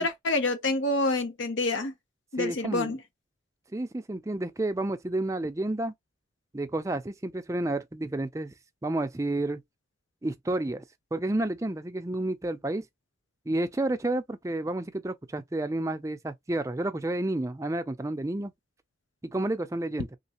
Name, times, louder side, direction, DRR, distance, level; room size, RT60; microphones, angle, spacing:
voice 1, 0.0-1.9 2.3-3.0, left 2 dB, 70° left, 0.7 m, -27 dB
voice 2, 2.4-3.0 3.7-5.9 6.5-8.5 8.8-9.6 10.2-10.8 11.1-12.8 13.5-18.5 19.2-20.1, right 2 dB, 15° right, 0.4 m, -30 dB
3.2 x 3.1 x 2.8 m
head